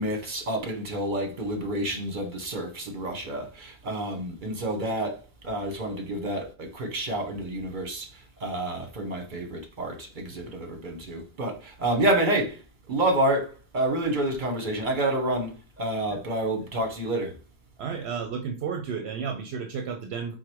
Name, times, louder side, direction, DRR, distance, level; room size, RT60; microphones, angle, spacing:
voice 1, 0.0-12.6 12.9-17.4, right 1 dB, 50° right, 1.1 m, -29 dB
voice 2, 17.8-20.3, right 6 dB, 75° right, 0.8 m, -32 dB
4.8 x 2.1 x 4.4 m
omnidirectional pair, 1.1 m